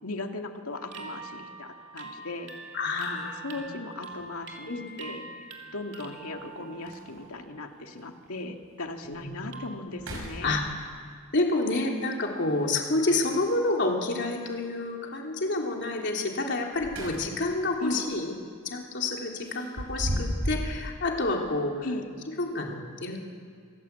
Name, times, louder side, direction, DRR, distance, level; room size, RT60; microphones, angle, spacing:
voice 1, 0.0-5.5 5.7-10.6 17.8-18.0 21.8-22.1, left 2 dB, 85° left, 4 dB, 2.1 m, -38 dB
sound 1, 0.7-7.6 8.0-8.4 9.5-9.8, right 3 dB, 55° right, 2.7 m, -44 dB
voice 2, 2.7-3.7 4.7-4.8 9.0-9.5 10.4-10.6 11.3-18.3 18.6-21.9 22.4-23.2, left 2 dB, 55° left, 0 dB, 3.4 m, -29 dB
sound 2, 4.1-4.2 6.0-6.1 6.5-6.6 6.8-7.4 8.0-8.1 8.6-8.7 9.1-9.5 9.9-11.0 13.1-13.7 16.5-17.6 17.9-18.2 19.4-20.8, equal, 75° right, 5.5 m, -35 dB
27.0 x 17.5 x 8.3 m, 2.2 s
head